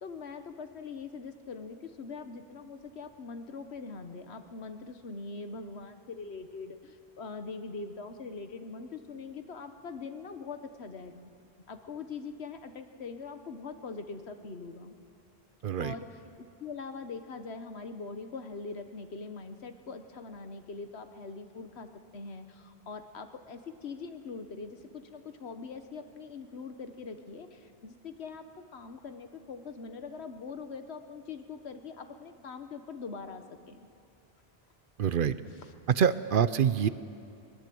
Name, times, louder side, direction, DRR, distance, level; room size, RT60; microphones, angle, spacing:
voice 1, 0.0-11.3 11.7-15.0 15.8-16.3 16.6-33.8 35.6-35.7, left 4 dB, 85° left, 8 dB, 1.4 m, -42 dB
voice 2, 15.6-15.9 35.0-35.3 35.9-36.9, right 8 dB, 60° right, 14 dB, 0.8 m, -25 dB
22.5 x 19.5 x 7.8 m, 2.5 s
omnidirectional pair, 1.1 m